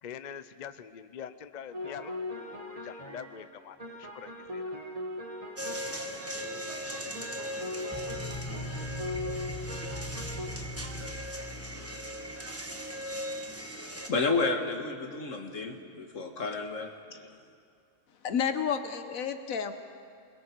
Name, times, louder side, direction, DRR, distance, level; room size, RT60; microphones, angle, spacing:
voice 1, 0.0-4.7, left 8 dB, 45° left, 12 dB, 0.6 m, -44 dB
sound 1, 1.7-10.5, left 1 dB, 30° right, 1.6 m, -40 dB
sound 2, 5.6-14.1, equal, 10° right, 1.1 m, -39 dB
sound 3, 7.9-12.6, left 1 dB, 15° left, 0.9 m, -40 dB
voice 2, 13.7-17.4, left 3 dB, 70° left, 4 dB, 2.0 m, -32 dB
voice 3, 18.2-19.7, left 7 dB, 85° left, 9 dB, 1.3 m, -30 dB
27.5 x 21.5 x 4.6 m, 2.3 s
omnidirectional pair, 1.4 m